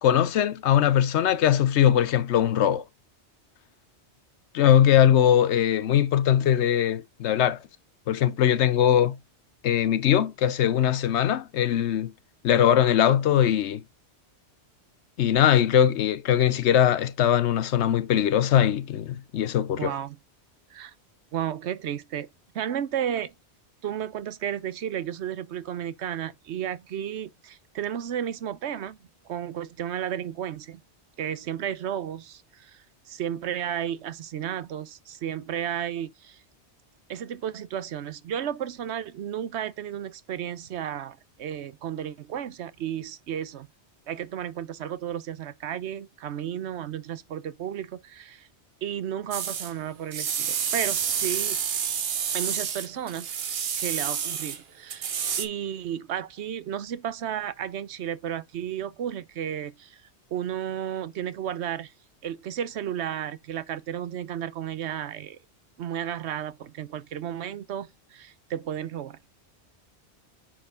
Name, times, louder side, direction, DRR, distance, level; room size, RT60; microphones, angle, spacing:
voice 1, 0.0-2.8 4.5-7.6 8.1-9.2 9.6-12.1 12.4-13.8 15.2-19.9, left 10 dB, 80° left, 1.0 m, -21 dB
voice 2, 19.8-20.2 20.7-20.9 21.3-22.3 22.5-23.3 23.8-29.0 29.2-30.8 31.2-36.4 37.1-43.7 44.1-48.5 48.8-51.6 52.3-53.3 53.8-55.1 55.4-60.0 60.3-61.9 62.2-65.4 65.8-69.2, right 10 dB, 80° right, 1.0 m, -33 dB
sound 1, 49.3-49.7 50.1-54.6 54.9-55.5, right 7 dB, 65° right, 1.1 m, -29 dB
8.8 x 4.4 x 3.7 m
omnidirectional pair, 1.1 m